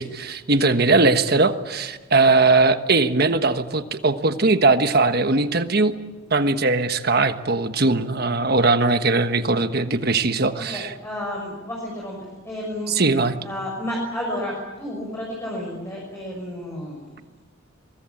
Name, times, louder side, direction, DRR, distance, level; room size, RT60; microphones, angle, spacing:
voice 1, 0.0-5.9 6.3-10.9 12.9-13.4, right 3 dB, 50° right, 9 dB, 1.3 m, -20 dB
voice 2, 10.7-12.2 12.4-12.9 13.4-17.1, left 1 dB, 10° left, -3 dB, 6.2 m, -31 dB
23.5 x 23.0 x 8.6 m, 1.3 s
head